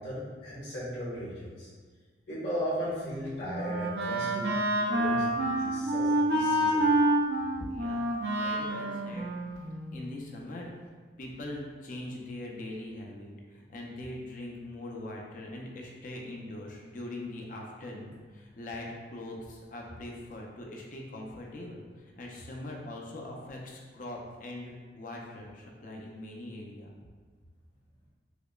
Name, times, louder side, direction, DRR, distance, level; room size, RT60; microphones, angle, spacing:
voice 1, 0.0-1.7 2.3-4.5 4.8-6.9, equal, 70° left, -10 dB, 1.4 m, -37 dB
Wind instrument woodwind instrument, 3.0-10.1, right 1 dB, 65° right, 0.4 m, -28 dB
voice 2, 7.6-9.3 9.9-10.7 11.2-26.9, left 1 dB, 45° left, 0 dB, 0.5 m, -42 dB
4.8 x 2.1 x 2.3 m, 1.5 s
head